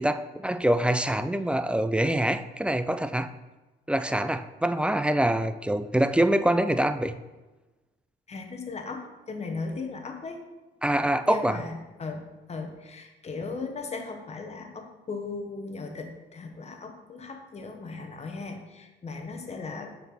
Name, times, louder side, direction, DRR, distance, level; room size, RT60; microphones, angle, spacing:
voice 1, 0.0-3.3 3.9-7.2 10.8-11.6, right 1 dB, 5° right, 10 dB, 0.3 m, -25 dB
voice 2, 8.3-10.4 11.2-19.9, left 4 dB, 35° left, 4 dB, 1.0 m, -37 dB
6.6 x 4.6 x 4.1 m, 1.1 s
cardioid pair, 90°, 20 cm